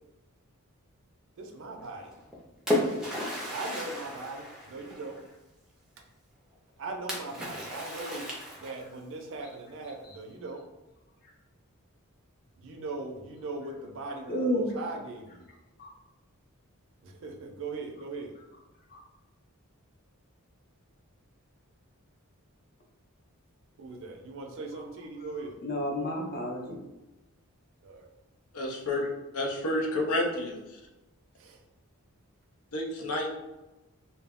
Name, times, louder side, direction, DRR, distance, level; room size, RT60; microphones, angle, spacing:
voice 1, 1.4-2.2 3.5-5.2 6.8-8.3 8.6-10.6 12.6-15.5 17.0-18.3 23.8-25.6 27.8-28.1 31.4-31.6, right 3 dB, 60° right, 3 dB, 0.4 m, -39 dB
Splash splatter, 2.1-5.3 7.1-9.0, left 1 dB, 5° right, 0.4 m, -33 dB
voice 2, 14.3-14.8 15.8-15.9 18.9-19.0 25.6-26.8, equal, 45° left, -1 dB, 0.6 m, -31 dB
voice 3, 28.5-29.1 29.3-30.8 32.7-33.3, left 1 dB, 85° left, 1 dB, 0.6 m, -30 dB
2.2 x 2.0 x 3.5 m, 1.0 s
head